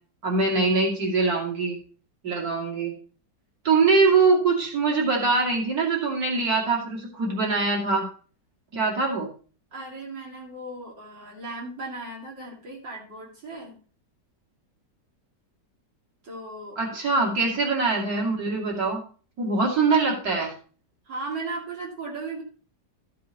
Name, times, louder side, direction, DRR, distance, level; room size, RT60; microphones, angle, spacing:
voice 1, 0.2-1.8 2.2-2.9 3.6-8.0 8.7-9.3 16.8-19.0 19.4-20.5, right 4 dB, 55° right, -2 dB, 3.1 m, -23 dB
voice 2, 9.7-13.8 16.2-16.8 21.0-22.4, right 3 dB, 80° right, -3 dB, 3.1 m, -36 dB
14.0 x 7.5 x 3.0 m, 0.39 s
omnidirectional pair, 1.9 m